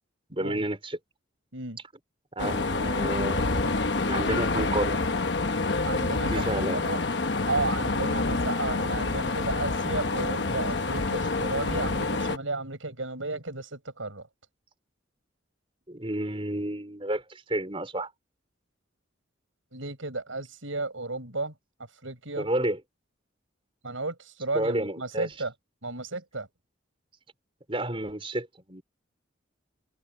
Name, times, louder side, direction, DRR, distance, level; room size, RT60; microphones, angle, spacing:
voice 1, 0.3-1.0 2.3-3.8 4.0-5.0 6.3-6.8 15.9-18.1 22.4-22.8 24.5-25.3 27.7-28.8, right 1 dB, 25° right, 4.8 m, -30 dB
sound 1, 2.4-12.4, left 3 dB, 60° left, 1.1 m, -27 dB
voice 2, 5.9-7.0 7.5-14.3 19.7-21.5 22.0-22.5 23.8-25.5 25.8-26.5, right 3 dB, 85° right, 7.1 m, -33 dB
head